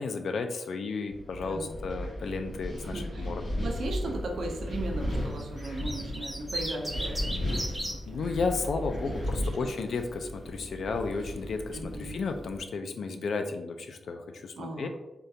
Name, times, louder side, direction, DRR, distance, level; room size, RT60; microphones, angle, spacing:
voice 1, 0.0-3.4 8.1-14.9, left 4 dB, 70° left, 6 dB, 0.3 m, -33 dB
Wind, 1.1-12.6, left 1 dB, 90° left, 1.1 m, -35 dB
voice 2, 1.4-1.8 2.8-3.3 3.6-8.2 9.0-9.1 11.7-12.2 14.6-14.9, right 2 dB, 75° right, 1 dB, 0.5 m, -37 dB
sound 1, 5.4-8.0 9.2-9.7, right 1 dB, 5° right, 0.4 m, -35 dB
3.6 x 2.3 x 2.7 m, 0.99 s
wide cardioid pair, 120°, 0 cm